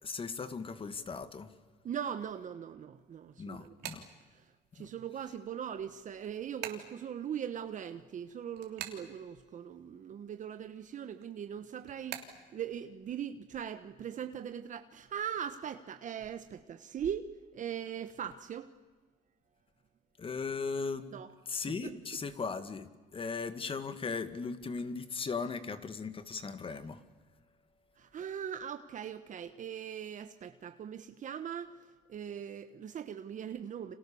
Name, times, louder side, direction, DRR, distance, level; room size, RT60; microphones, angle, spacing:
voice 1, 0.0-1.5 3.4-4.1 4.8-4.9 20.2-21.1 21.5-27.0, left 4 dB, 30° left, 2.1 m, -38 dB
voice 2, 1.8-3.8 4.3-4.4 4.7-17.3 17.5-18.7 21.1-21.3 21.8-22.0 28.0-31.8 32.1-33.9, right 8 dB, 50° right, 1.2 m, -40 dB
sound 1, 3.0-4.9 5.3-9.9 10.2-12.5, right 11 dB, 85° right, 3.2 m, -46 dB
30.0 x 27.0 x 7.1 m
cardioid pair, 110°, 17 cm